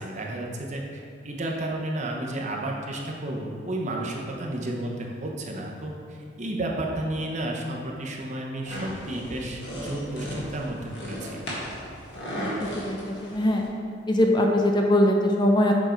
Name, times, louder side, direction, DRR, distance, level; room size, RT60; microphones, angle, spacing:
voice 1, 0.0-11.4, right 1 dB, 40° right, -1 dB, 0.9 m, -32 dB
sound 1, 8.6-13.7, equal, 60° left, 1.7 m, -36 dB
voice 2, 12.9-13.6 14.1-15.7, left 1 dB, 25° left, 2 dB, 0.5 m, -21 dB
7.3 x 5.2 x 4.5 m, 2.3 s
head